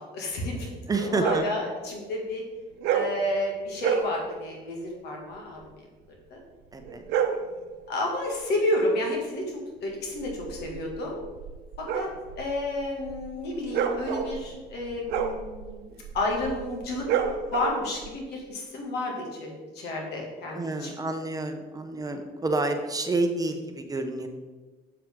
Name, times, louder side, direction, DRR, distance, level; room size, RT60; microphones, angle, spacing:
voice 1, 0.0-0.7 1.0-2.4 2.9-5.9 6.3-6.4 7.9-11.4 11.8-12.1 12.4-17.1 17.5-20.9, left 1 dB, 80° left, 0 dB, 2.2 m, -31 dB
voice 2, 0.9-1.5 6.7-7.1 20.5-24.3, right 2 dB, 20° right, 6 dB, 0.8 m, -29 dB
sound 1, 1.2-1.6 2.8-3.2 3.8-4.1 6.8-7.5 10.1-18.1, right 7 dB, 85° right, 0.7 m, -30 dB
7.5 x 7.1 x 3.7 m, 1.3 s
cardioid pair, 110°, 17 cm